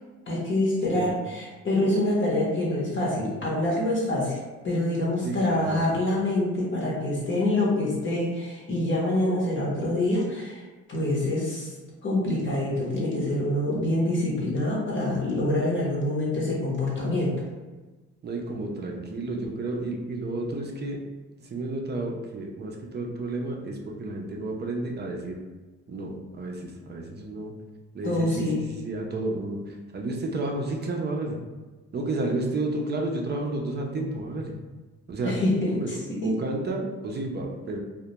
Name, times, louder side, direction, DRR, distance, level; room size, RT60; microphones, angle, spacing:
voice 1, 0.3-4.4 4.6-10.6 10.9-11.8 12.0-17.3 28.0-28.6 35.2-36.3, left 1 dB, 40° left, -4 dB, 0.8 m, -26 dB
voice 2, 5.2-5.9 18.2-21.0 21.4-25.4 25.9-27.5 27.9-31.4 31.9-34.5 35.1-35.4 35.7-35.9 36.2-37.8, right 2 dB, 35° right, 1 dB, 0.5 m, -31 dB
2.2 x 2.1 x 2.8 m, 1.3 s
cardioid pair, 90°, 30 cm